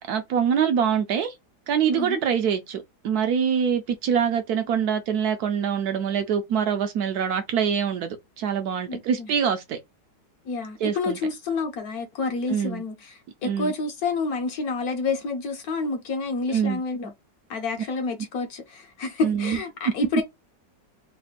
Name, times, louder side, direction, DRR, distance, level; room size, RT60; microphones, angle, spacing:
voice 1, 0.1-1.3 1.7-9.8 10.8-11.2 12.5-12.8 13.4-13.7 16.5-16.8 19.2-19.6, right 7 dB, 70° right, 1.0 m, -24 dB
voice 2, 8.9-9.3 10.5-17.1 17.5-20.2, left 3 dB, 65° left, 1.1 m, -29 dB
3.4 x 2.1 x 3.9 m
omnidirectional pair, 1.9 m